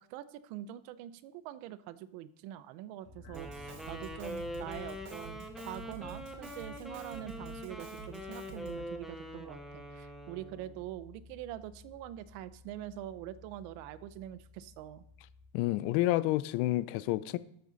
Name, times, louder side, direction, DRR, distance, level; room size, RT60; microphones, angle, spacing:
voice 1, 0.0-15.0, right 13 dB, 65° right, 0.8 m, -44 dB
sound 1, 3.0-15.5, left 2 dB, 45° left, 3.3 m, -55 dB
Wind instrument woodwind instrument, 3.3-10.8, equal, ahead, 0.6 m, -44 dB
Drum kit, 3.3-9.0, right 4 dB, 90° right, 2.7 m, -50 dB
voice 2, 15.5-17.4, left 16 dB, 75° left, 0.7 m, -29 dB
12.5 x 7.9 x 4.0 m
cardioid pair, 180°, 47 cm